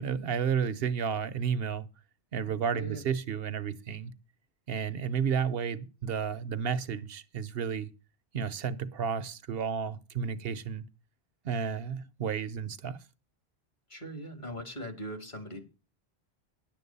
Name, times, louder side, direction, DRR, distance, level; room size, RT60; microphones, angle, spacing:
voice 1, 0.0-1.8 2.3-4.1 4.7-7.9 8.3-10.9 11.4-13.0, right 7 dB, 65° right, 1.0 m, -32 dB
voice 2, 2.7-3.0 13.9-15.7, equal, 45° left, 1.9 m, -40 dB
10.5 x 7.8 x 5.4 m
omnidirectional pair, 1.1 m